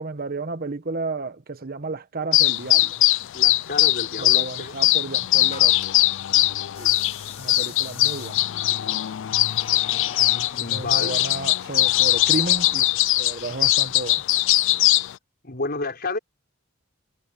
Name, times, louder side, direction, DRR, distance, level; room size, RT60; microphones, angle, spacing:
voice 1, 0.0-3.0 4.2-5.7 6.8-6.9 7.4-8.6 10.7-12.9 13.2-14.2, right 3 dB, 45° right, 1.2 m, -32 dB
sound 1, 2.3-15.1, left 16 dB, 65° left, 0.4 m, -21 dB
voice 2, 3.3-4.8 10.5-11.3 15.4-16.2, left 3 dB, 50° left, 4.7 m, -31 dB
sound 2, 4.1-6.0 6.7-10.6, left 5 dB, 30° left, 4.1 m, -44 dB
head